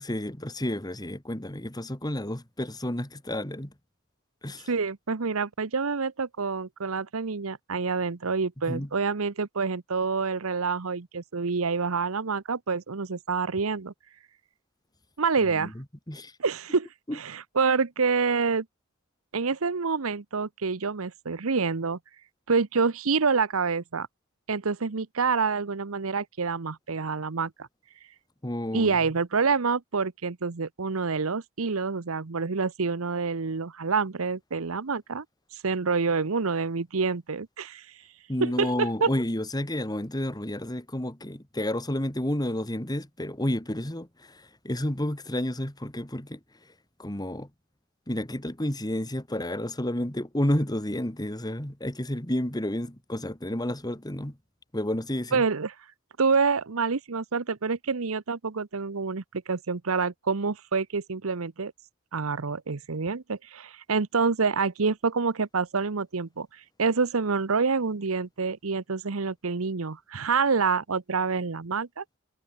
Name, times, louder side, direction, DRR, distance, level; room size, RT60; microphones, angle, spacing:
voice 1, 0.0-3.7 4.4-4.7 8.7-8.9 15.6-16.3 17.1-17.2 28.4-29.0 38.3-46.4 47.0-47.5 48.1-54.4 54.7-55.4, left 1 dB, 20° left, 2.3 m, -31 dB
voice 2, 4.7-13.9 15.2-15.7 16.4-16.9 17.1-18.7 19.3-22.0 22.5-24.1 24.5-27.7 28.7-35.2 35.6-37.9 38.4-39.1 55.3-55.7 56.2-61.7 62.1-66.5 66.8-72.0, right 4 dB, 80° right, 0.9 m, -27 dB
head